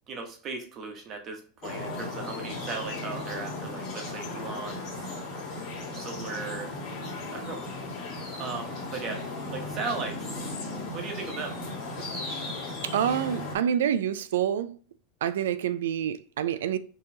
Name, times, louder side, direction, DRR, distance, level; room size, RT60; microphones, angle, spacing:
voice 1, 0.1-5.1 5.9-6.7 7.3-7.9 8.4-10.2 10.9-11.6 12.0-12.1, right 4 dB, 40° right, 1.0 m, -37 dB
sound 1, 1.6-13.6, left 2 dB, 55° left, 1.7 m, -36 dB
voice 2, 12.8-14.8 15.2-16.8, right 9 dB, 85° right, 0.3 m, -27 dB
4.5 x 3.0 x 2.7 m
hypercardioid pair, 115°, 0 cm